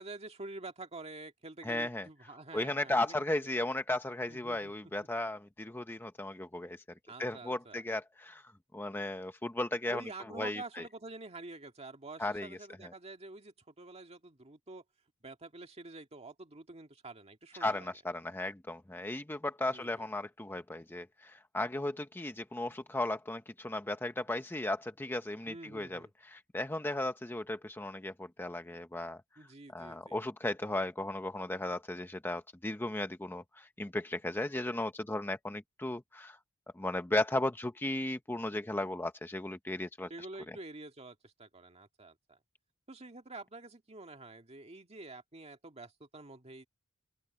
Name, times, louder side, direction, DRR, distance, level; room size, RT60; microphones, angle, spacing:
voice 1, 0.0-3.5 4.3-4.7 7.1-7.8 9.9-14.8 15.2-17.9 19.7-20.1 25.5-26.1 29.4-30.2 40.1-42.4 42.9-46.7, right 2 dB, 30° right, 1.9 m, -48 dB
voice 2, 1.6-2.1 2.5-6.8 7.2-10.0 10.4-10.8 12.2-12.9 17.6-29.2 29.7-36.4 36.7-40.1 40.5-40.6, left 1 dB, 10° left, 0.7 m, -35 dB
open air
head